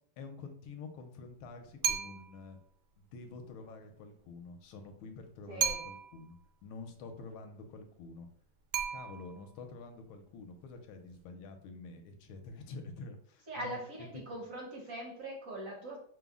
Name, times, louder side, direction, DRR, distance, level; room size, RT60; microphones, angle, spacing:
voice 1, 0.2-2.6 3.0-6.4 6.6-8.3 8.9-13.8 14.1-14.4, left 3 dB, 80° left, 5 dB, 1.4 m, -48 dB
sound 1, 1.8-2.5 5.6-6.3 8.7-9.5, right 8 dB, 80° right, 1.3 m, -34 dB
voice 2, 5.5-5.9 13.5-16.0, right 1 dB, 60° right, -1 dB, 0.8 m, -42 dB
5.4 x 2.0 x 3.5 m, 0.62 s
omnidirectional pair, 2.3 m